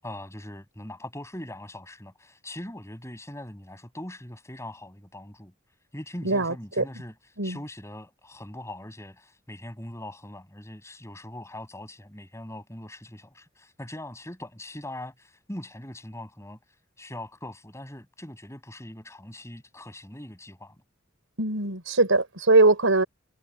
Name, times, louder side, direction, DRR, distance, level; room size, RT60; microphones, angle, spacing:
voice 1, 0.0-5.5 5.9-7.1 7.4-16.6 17.0-20.8, left 1 dB, 15° left, 7.8 m, -41 dB
voice 2, 6.2-6.8 7.4-7.6 21.4-23.0, right 2 dB, 90° right, 4.6 m, -21 dB
head